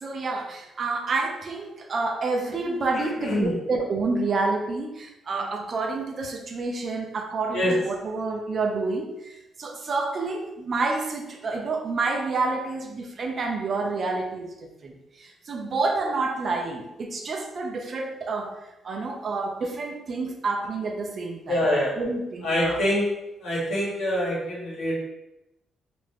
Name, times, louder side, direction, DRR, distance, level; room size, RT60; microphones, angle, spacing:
voice 1, 0.0-14.5 14.8-14.9 15.2-18.6 18.8-21.6 22.0-22.8, right 3 dB, 45° right, 3 dB, 0.4 m, -28 dB
voice 2, 2.9-3.5 7.5-7.7 21.4-22.0 22.4-23.1 23.4-25.0, left 1 dB, 70° left, -6 dB, 1.0 m, -25 dB
2.4 x 2.1 x 3.2 m, 0.94 s
cardioid pair, 120°, 0 cm